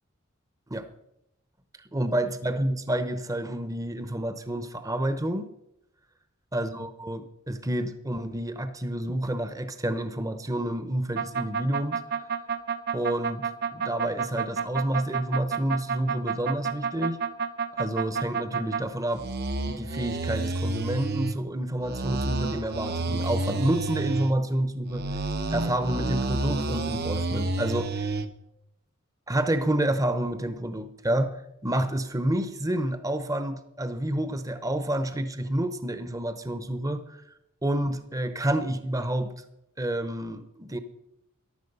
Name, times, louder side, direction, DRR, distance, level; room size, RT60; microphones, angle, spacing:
voice 1, 1.9-5.5 6.5-12.0 12.9-13.4 13.7-17.2 17.8-19.3 19.7-25.0 25.5-28.1 29.3-31.3 31.6-37.0 37.6-39.3 39.8-40.8, right 1 dB, 15° right, 10 dB, 0.9 m, -29 dB
sound 1, 11.2-18.8 19.1-21.4 21.8-24.3 24.9-28.3, right 4 dB, 50° right, 1.0 m, -29 dB
14.5 x 11.0 x 5.5 m, 0.83 s
head